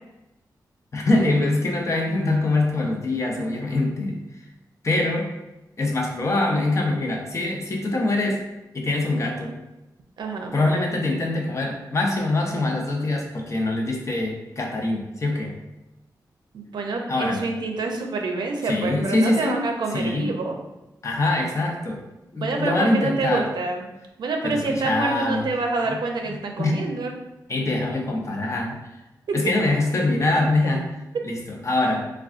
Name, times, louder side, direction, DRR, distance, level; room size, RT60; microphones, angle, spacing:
voice 1, 0.9-4.2 4.8-5.3 5.8-8.4 8.7-9.6 10.5-15.6 17.1-17.4 18.6-20.3 21.0-22.0 22.3-23.5 24.4-25.4 25.8-26.0 26.3-26.8 27.5-28.8 29.3-30.9 31.2-32.1, left 2 dB, 40° left, 0 dB, 0.6 m, -24 dB
voice 2, 10.2-10.5 16.5-20.6 22.4-23.9 24.2-27.1, right 3 dB, 80° right, 2 dB, 0.5 m, -27 dB
3.6 x 2.3 x 2.4 m, 0.97 s
cardioid pair, 75°, 7 cm